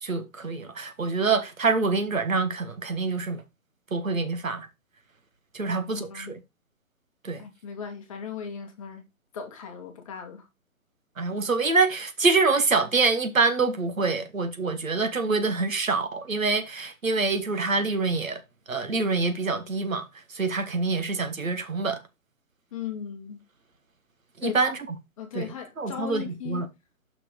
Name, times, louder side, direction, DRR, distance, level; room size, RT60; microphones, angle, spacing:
voice 1, 0.0-3.4 3.9-4.7 5.5-6.4 7.2-7.4 11.2-18.4 18.7-20.0 20.3-22.0 24.4-24.8 25.3-25.5 25.8-26.7, right 4 dB, 70° right, 1.4 m, -26 dB
voice 2, 5.6-6.4 7.4-9.0 9.3-10.5 22.7-23.4 24.4-24.7 25.2-26.7, left 7 dB, 25° left, 1.1 m, -37 dB
5.9 x 4.6 x 4.9 m
figure-of-eight pair, 135°, 42 cm